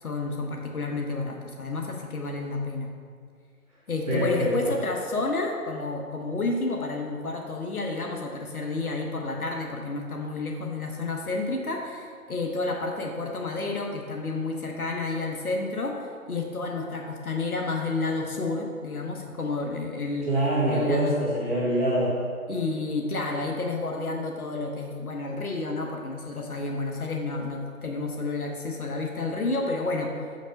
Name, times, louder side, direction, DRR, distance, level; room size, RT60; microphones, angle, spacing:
voice 1, 0.0-2.9 3.9-20.3 20.7-21.2 22.5-30.2, left 3 dB, 70° left, 1 dB, 1.1 m, -30 dB
voice 2, 4.1-4.7 20.3-22.1, right 1 dB, 25° right, -12 dB, 1.5 m, -24 dB
6.7 x 5.2 x 5.1 m, 2.1 s
figure-of-eight pair, 155°, 45 cm